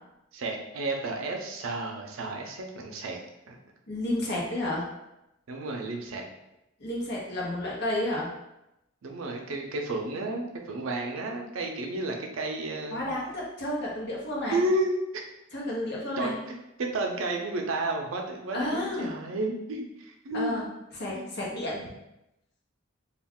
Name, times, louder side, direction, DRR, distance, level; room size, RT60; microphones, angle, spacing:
voice 1, 0.3-3.2 3.5-3.6 5.5-6.2 9.0-13.1 14.5-15.0 16.2-20.7 21.1-21.3, right 2 dB, 75° right, 2 dB, 0.5 m, -32 dB
voice 2, 3.9-4.9 6.8-8.3 12.9-14.6 15.5-16.3 18.5-19.1 20.3-20.6 21.0-21.8, left 1 dB, 55° left, -3 dB, 0.8 m, -31 dB
2.3 x 2.3 x 3.5 m, 0.88 s
head